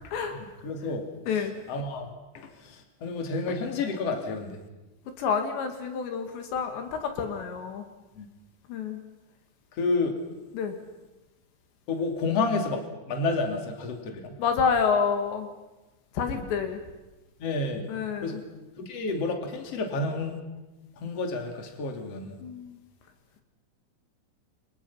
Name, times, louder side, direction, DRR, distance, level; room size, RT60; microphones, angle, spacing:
voice 1, 0.6-1.0 1.7-4.6 8.1-8.3 9.8-10.1 11.9-14.4 16.3-16.4 17.4-17.8 18.2-18.4 18.8-20.4 21.0-22.4, left 3 dB, 40° left, 4 dB, 3.3 m, -30 dB
voice 2, 5.2-7.9 8.7-9.0 10.5-10.8 14.4-15.5 16.1-16.8 17.9-18.4 22.4-22.8, left 6 dB, 75° left, 6 dB, 4.2 m, -28 dB
29.5 x 25.5 x 5.7 m, 1.1 s
omnidirectional pair, 5.1 m